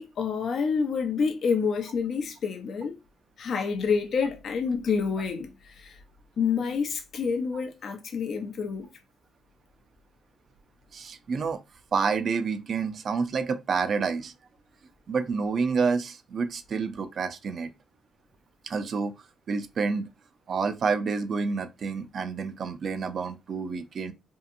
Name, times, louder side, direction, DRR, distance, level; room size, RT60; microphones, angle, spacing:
voice 1, 0.0-2.9 3.4-6.0 6.4-8.9, left 5 dB, 60° left, 0.4 m, -28 dB
voice 2, 10.9-11.6 11.9-14.3 15.1-17.7 18.6-19.1 19.5-20.1 20.5-24.1, right 5 dB, 55° right, 0.4 m, -28 dB
2.7 x 2.4 x 2.5 m
cardioid pair, 90°, 0 cm